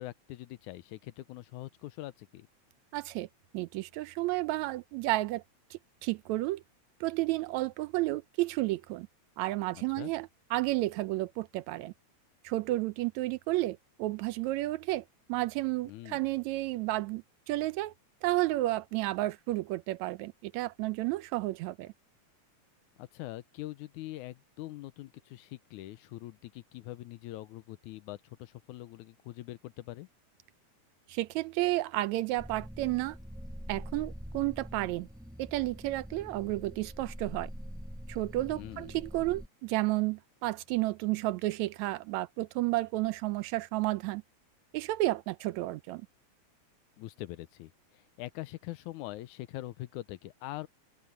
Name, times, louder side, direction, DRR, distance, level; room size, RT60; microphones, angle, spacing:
voice 1, 0.0-2.5 9.7-10.1 15.8-16.3 23.0-30.1 38.5-39.0 47.0-50.7, left 16 dB, 85° left, 2.1 m, -43 dB
voice 2, 2.9-3.3 3.5-5.4 5.7-6.6 7.0-9.1 9.4-11.9 12.4-15.0 15.3-17.9 18.2-21.9 31.1-33.2 33.7-35.1 35.4-37.5 38.1-44.2 44.7-46.1, right 18 dB, 80° right, 1.8 m, -32 dB
sound 1, 32.4-39.5, equal, ahead, 4.6 m, -44 dB
open air
omnidirectional pair, 3.4 m